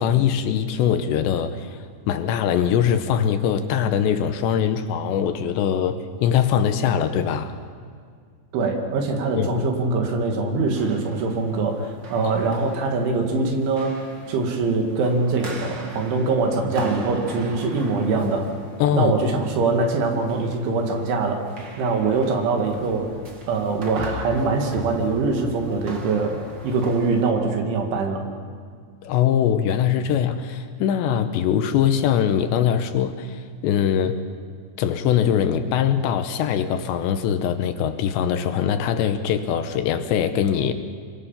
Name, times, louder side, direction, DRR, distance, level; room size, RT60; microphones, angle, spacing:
voice 1, 0.0-1.8 2.1-7.6 9.4-9.7 12.4-12.5 18.8-19.1 29.0-34.2 34.8-40.7, left 9 dB, 75° left, 9 dB, 2.9 m, -22 dB
voice 2, 8.5-18.5 18.9-21.5 21.8-23.1 23.5-28.3, right 3 dB, 75° right, 3 dB, 4.6 m, -23 dB
sound 1, 10.7-27.3, right 2 dB, 55° right, 1.2 m, -39 dB
26.0 x 24.0 x 5.8 m, 2.1 s
omnidirectional pair, 5.5 m